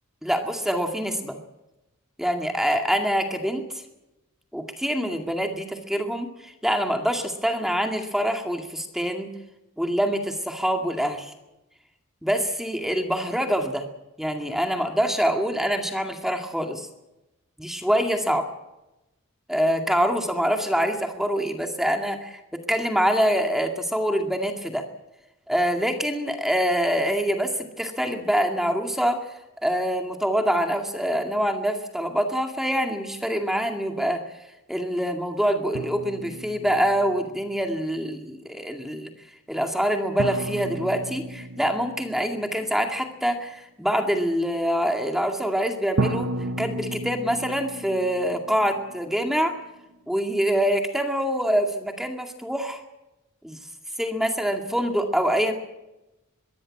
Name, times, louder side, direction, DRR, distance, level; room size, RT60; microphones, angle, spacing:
voice 1, 0.2-1.4 2.2-3.7 4.5-9.3 9.8-11.3 12.2-13.9 14.2-16.9 17.6-18.4 19.5-24.9 25.5-29.3 29.6-34.2 34.7-39.1 39.5-46.3 46.6-49.6 50.1-52.8 53.4-53.6 54.0-55.5, equal, ahead, 4 dB, 2.1 m, -25 dB
sound 1, 35.7-37.6 40.2-43.0 46.0-49.8, right 2 dB, 80° right, 1.1 m, -33 dB
23.0 x 15.5 x 8.6 m, 0.94 s
head